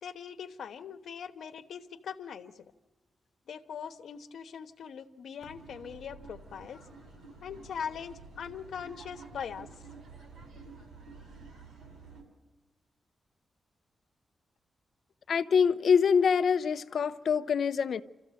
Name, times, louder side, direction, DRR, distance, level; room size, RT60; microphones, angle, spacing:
voice 1, 0.0-2.5 3.5-6.8 7.4-9.7, left 7 dB, 85° left, 1.1 m, -41 dB
sound 1, 5.4-12.2, right 4 dB, 80° right, 4.8 m, -50 dB
voice 2, 15.3-18.0, left 6 dB, 55° left, 0.7 m, -25 dB
27.0 x 14.5 x 7.6 m
wide cardioid pair, 170°, 0 cm